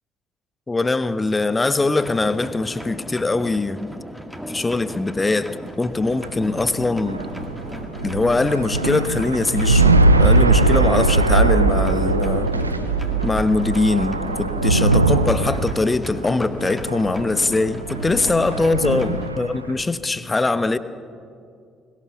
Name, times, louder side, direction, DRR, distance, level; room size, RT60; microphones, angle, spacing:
voice 1, 0.7-3.9 4.5-7.2 8.0-12.5 13.2-20.8, left 3 dB, 20° left, 13 dB, 1.0 m, -22 dB
sound 1, 2.0-19.3, equal, ahead, 2.2 m, -36 dB
sound 2, 6.1-19.7, right 2 dB, 90° right, 0.5 m, -20 dB
20.5 x 20.0 x 7.0 m, 2.3 s
figure-of-eight pair, 45°, 0 cm